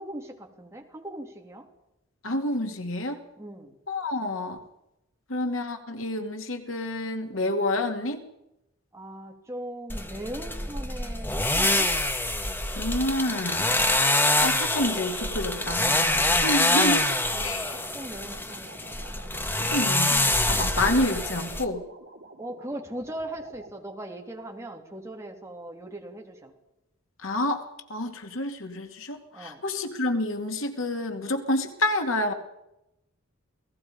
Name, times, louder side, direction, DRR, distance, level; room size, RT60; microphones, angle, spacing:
voice 1, 0.0-1.7 3.4-3.8 8.9-11.9 17.3-18.7 19.0-19.1 22.4-26.5 29.3-29.6, right 1 dB, 15° right, 1 dB, 3.1 m, -39 dB
voice 2, 2.2-3.2 3.9-4.6 5.3-8.2 12.7-13.7 14.4-17.1 17.4-17.8 19.7-21.8 27.2-32.3, left 1 dB, 90° left, 5 dB, 2.4 m, -28 dB
sound 1, 9.9-21.6, left 2 dB, 10° left, 1.5 m, -25 dB
Violin thru FX pedal, 15.4-23.7, right 2 dB, 70° right, 4.7 m, -49 dB
28.5 x 18.5 x 5.2 m, 0.88 s
head